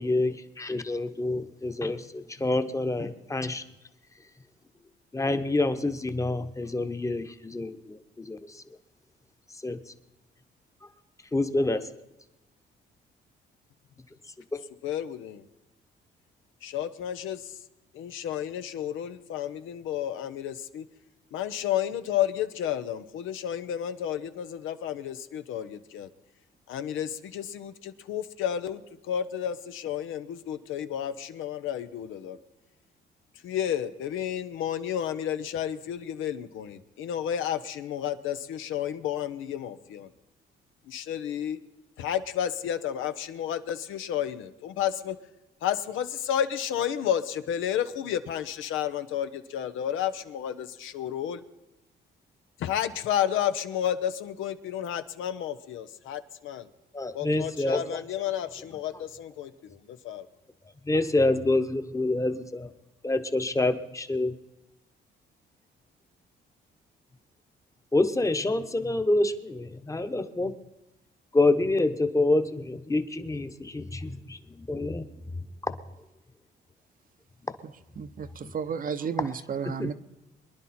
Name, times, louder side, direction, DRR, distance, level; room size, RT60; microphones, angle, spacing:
voice 1, 0.0-3.6 5.1-8.6 9.6-9.8 11.3-11.9 14.5-14.6 56.9-58.0 60.9-62.7 63.0-64.3 67.9-70.5 71.3-75.3 75.6-75.7 78.4-78.5 79.2-79.3 79.6-79.9, left 2 dB, 15° left, 9 dB, 1.0 m, -27 dB
voice 2, 14.8-15.4 16.6-17.6 17.9-20.8 21.3-26.1 26.7-32.4 33.4-36.7 37.0-40.1 40.9-41.6 42.0-45.2 45.6-51.4 52.6-56.7 57.1-60.3, left 10 dB, 85° left, 10 dB, 0.8 m, -31 dB
voice 3, 78.0-79.9, right 6 dB, 45° right, 11 dB, 0.8 m, -32 dB
23.5 x 10.5 x 4.3 m, 0.99 s
cardioid pair, 90°, 20 cm